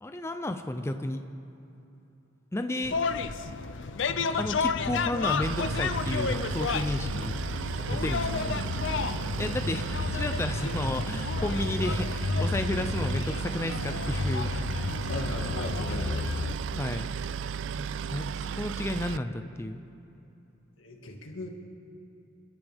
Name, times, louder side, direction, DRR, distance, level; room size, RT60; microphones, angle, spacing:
voice 1, 0.0-1.2 2.5-3.0 4.4-7.4 7.9-8.6 9.4-14.8 16.7-17.1 17.8-19.8, left 1 dB, 15° left, 7 dB, 0.5 m, -32 dB
sound 1, 2.8-16.5, left 4 dB, 65° left, 0.5 m, -31 dB
voice 2, 3.1-3.4 4.1-4.3 8.5-9.5 15.1-16.3 16.7-17.2 20.8-21.5, left 1 dB, 85° left, 1 dB, 2.0 m, -40 dB
Boat Water vehicle, 5.4-19.2, right 7 dB, 65° right, 0.3 m, -35 dB
28.5 x 12.5 x 3.5 m, 2.9 s
head